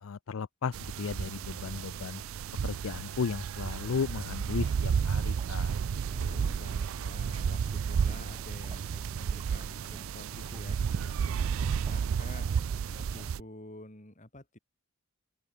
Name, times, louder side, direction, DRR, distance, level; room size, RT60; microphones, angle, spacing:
voice 1, 0.0-2.2 2.6-5.7 6.2-6.5, left 5 dB, 75° left, 0.5 m, -35 dB
sound 1, 0.7-13.4, right 7 dB, 75° right, 0.4 m, -32 dB
sound 2, 3.9-13.3, right 1 dB, 25° right, 1.5 m, -51 dB
voice 2, 6.1-12.5 13.0-14.6, left 1 dB, 35° left, 3.5 m, -49 dB
open air
head